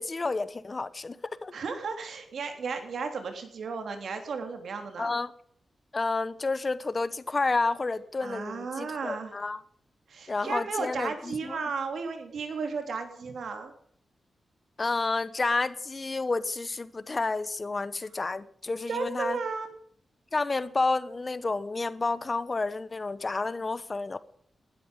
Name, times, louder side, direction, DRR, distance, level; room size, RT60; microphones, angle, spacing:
voice 1, 0.0-1.5 5.0-5.3 5.9-9.6 10.3-11.6 14.8-19.4 20.3-24.2, left 3 dB, 30° left, 1.0 m, -30 dB
voice 2, 1.5-5.2 8.2-9.3 10.1-13.7 18.9-19.7, right 5 dB, 75° right, 3.5 m, -34 dB
19.5 x 12.5 x 5.3 m
wide cardioid pair, 160°, 0 cm